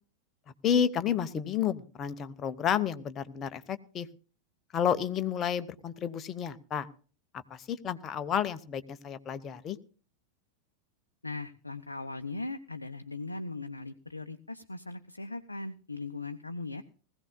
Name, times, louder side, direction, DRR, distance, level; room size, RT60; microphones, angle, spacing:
voice 1, 0.6-4.1 4.7-6.9 7.5-9.8, left 8 dB, 30° left, 11 dB, 0.9 m, -31 dB
voice 2, 11.2-16.8, left 3 dB, 80° left, 8 dB, 0.6 m, -39 dB
20.0 x 15.5 x 2.2 m, 0.39 s
figure-of-eight pair, 90°, 0 cm